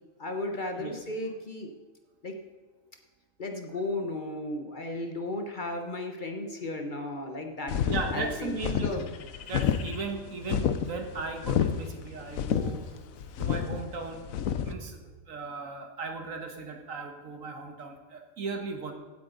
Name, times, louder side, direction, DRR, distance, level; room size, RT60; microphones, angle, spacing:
voice 1, 0.2-1.7 2.2-2.4 3.4-8.5 8.8-9.1, left 2 dB, 40° left, 4 dB, 1.1 m, -35 dB
sound 1, 7.7-14.7, left 8 dB, 80° left, 1.1 m, -29 dB
voice 2, 7.9-9.1 9.5-12.9 13.4-14.3 14.7-18.9, right 4 dB, 75° right, 5 dB, 1.7 m, -37 dB
16.0 x 8.7 x 3.9 m, 1.3 s
omnidirectional pair, 1.4 m